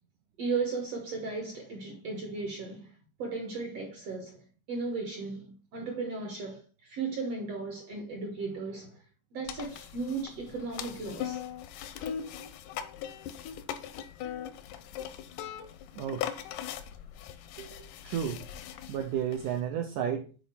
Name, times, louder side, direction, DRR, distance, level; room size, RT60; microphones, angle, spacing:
voice 1, 0.4-9.0 9.3-11.4, right 4 dB, 70° right, 1.5 m, -36 dB
sound 1, 9.5-19.6, left 9 dB, 80° left, 1.8 m, -40 dB
voice 2, 16.0-16.3 17.6-17.7 18.0-18.4 18.9-20.3, right 9 dB, 85° right, 1.8 m, -32 dB
7.7 x 4.0 x 4.3 m
omnidirectional pair, 4.3 m